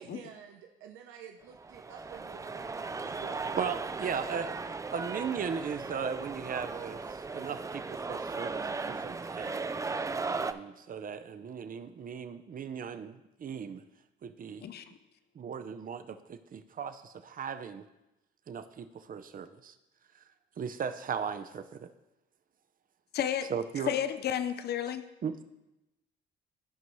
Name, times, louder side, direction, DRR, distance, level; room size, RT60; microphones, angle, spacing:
voice 1, 0.0-3.7, right 8 dB, 90° right, 3 dB, 0.7 m, -48 dB
sound 1, 1.5-10.5, right 4 dB, 15° right, 0.4 m, -37 dB
voice 2, 3.6-4.6 4.9-9.6 10.3-13.8 14.2-14.7 15.3-17.9 18.5-19.7 20.6-21.9 23.5-23.9 25.2-25.4, right 7 dB, 45° right, 10 dB, 0.7 m, -37 dB
voice 3, 14.6-15.0 23.1-23.5 23.9-25.1, left 9 dB, 55° left, 10 dB, 0.5 m, -32 dB
14.0 x 5.3 x 3.1 m, 0.96 s
cardioid pair, 90°, 20 cm